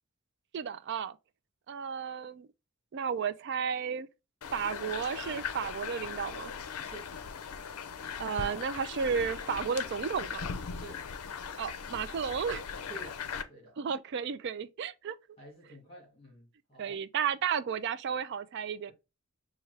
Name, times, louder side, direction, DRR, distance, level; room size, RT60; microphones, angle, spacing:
voice 1, 0.5-1.2 1.7-2.5 2.9-4.1 4.5-6.5 8.2-10.5 11.6-12.6 13.8-15.2 16.8-18.9, right 7 dB, 50° right, 0.3 m, -33 dB
sound 1, 4.4-13.4, left 6 dB, 80° left, 0.5 m, -39 dB
voice 2, 12.9-13.2 13.5-13.8 15.4-17.0, right 1 dB, 25° left, 2.0 m, -49 dB
5.6 x 2.3 x 3.3 m
head